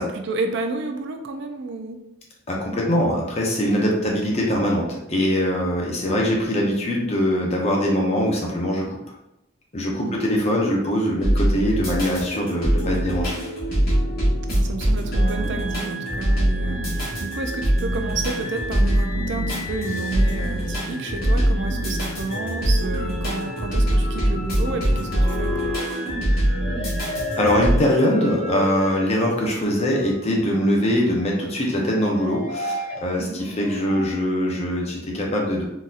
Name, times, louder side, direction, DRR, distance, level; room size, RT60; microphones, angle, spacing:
voice 1, 0.0-2.0 10.0-10.1 14.5-25.7 33.2-33.4, right 3 dB, 55° right, 4 dB, 0.4 m, -31 dB
voice 2, 2.5-9.0 9.7-13.3 27.4-35.6, equal, 30° left, -1 dB, 0.6 m, -22 dB
sound 1, 11.2-27.8, equal, 45° left, 1.3 m, -23 dB
sound 2, 24.7-34.1, left 1 dB, 85° left, 1.4 m, -33 dB
3.9 x 2.7 x 2.4 m, 0.84 s
head